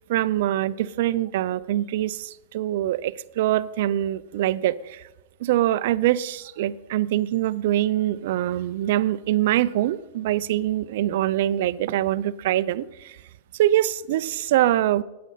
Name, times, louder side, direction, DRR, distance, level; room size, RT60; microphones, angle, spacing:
voice 1, 0.0-5.1 5.4-13.2 13.6-15.0, right 13 dB, 60° right, 16 dB, 0.5 m, -24 dB
14.5 x 9.5 x 5.7 m, 1.0 s
supercardioid pair, 160°, 0 cm